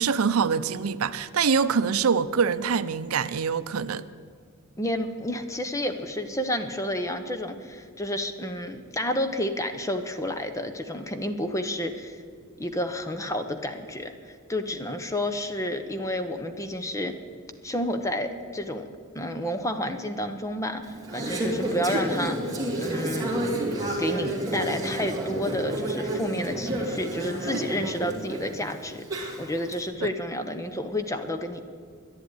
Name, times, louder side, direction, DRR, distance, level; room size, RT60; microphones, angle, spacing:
voice 1, 0.0-4.0 30.0-30.1, right 6 dB, 85° right, 14 dB, 0.5 m, -24 dB
voice 2, 4.8-12.2 12.6-17.2 17.6-18.9 19.1-23.4 24.0-31.6, left 1 dB, 15° left, 8 dB, 0.8 m, -30 dB
Conversation / Chatter, 20.8-29.8, right 1 dB, 15° right, 2.6 m, -30 dB
11.0 x 10.5 x 9.6 m, 2.2 s
head